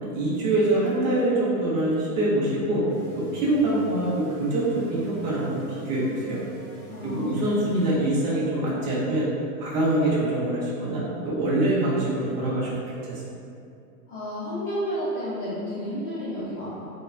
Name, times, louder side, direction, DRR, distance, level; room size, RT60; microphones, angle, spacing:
voice 1, 0.0-2.9 3.2-6.4 7.0-9.3 9.6-12.7 13.0-13.2, right 1 dB, 30° right, -7 dB, 0.6 m, -24 dB
sound 1, 2.9-7.9, right 2 dB, 10° left, 1.2 m, -42 dB
voice 2, 6.9-7.4 14.1-16.9, equal, 35° left, -11 dB, 0.6 m, -31 dB
3.2 x 2.2 x 2.4 m, 2.5 s
hypercardioid pair, 155°, 46 cm